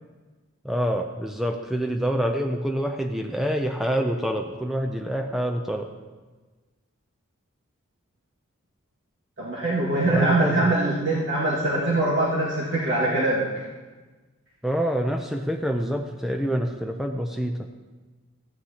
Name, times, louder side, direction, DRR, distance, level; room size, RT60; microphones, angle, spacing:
voice 1, 0.6-5.9 10.1-10.7 14.6-17.7, equal, ahead, 4 dB, 0.4 m, -26 dB
voice 2, 9.4-13.6, right 2 dB, 55° right, -7 dB, 1.9 m, -23 dB
14.5 x 9.3 x 2.9 m, 1.3 s
head